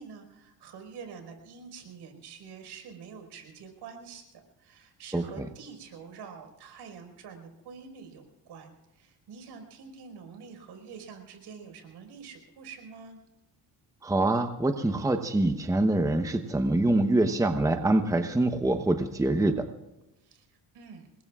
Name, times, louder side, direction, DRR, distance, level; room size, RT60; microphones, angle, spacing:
voice 1, 0.0-13.2 20.2-21.1, right 6 dB, 70° right, 5 dB, 4.8 m, -46 dB
voice 2, 5.1-5.5 14.0-19.7, right 2 dB, 10° right, 6 dB, 0.9 m, -25 dB
27.0 x 21.0 x 2.4 m, 0.96 s
cardioid pair, 130°, 41 cm